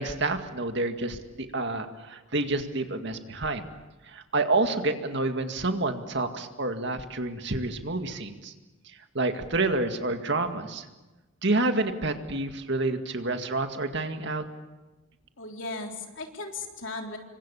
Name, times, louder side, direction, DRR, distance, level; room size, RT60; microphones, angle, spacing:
voice 1, 0.0-3.7 4.1-8.5 9.1-10.8 11.4-14.4, right 2 dB, 60° right, 6 dB, 2.2 m, -28 dB
voice 2, 15.4-17.2, left 3 dB, 65° left, 2 dB, 3.8 m, -36 dB
27.5 x 25.0 x 7.2 m, 1.1 s
head